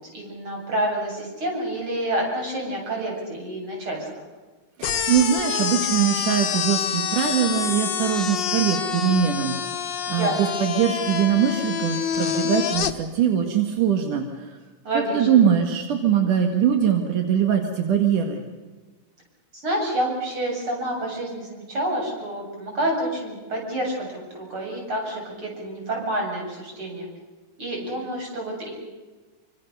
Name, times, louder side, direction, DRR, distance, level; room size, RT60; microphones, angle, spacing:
voice 1, 0.1-4.1 10.1-10.6 14.8-15.3 19.5-27.1 27.6-28.7, right 1 dB, 40° right, 0 dB, 8.9 m, -28 dB
sound 1, 4.8-12.9, left 8 dB, 50° left, 1.5 m, -27 dB
voice 2, 4.8-9.6 10.1-14.5 15.1-18.4, right 8 dB, 80° right, 4 dB, 3.3 m, -22 dB
28.0 x 25.0 x 6.7 m, 1.3 s
omnidirectional pair, 3.6 m